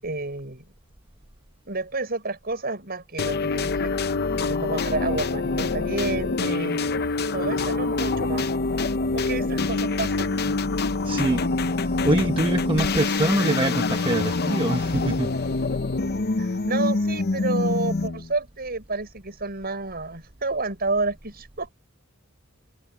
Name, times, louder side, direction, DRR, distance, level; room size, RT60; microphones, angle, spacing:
voice 1, 0.0-0.7 1.7-3.9 4.5-6.8 7.2-8.5 9.1-10.3 16.4-21.7, right 3 dB, 45° right, 6.6 m, -30 dB
sound 1, 3.2-18.3, left 3 dB, 50° left, 0.7 m, -25 dB
voice 2, 11.0-11.4 11.8-15.3 16.4-16.6, right 1 dB, 25° right, 1.0 m, -25 dB
head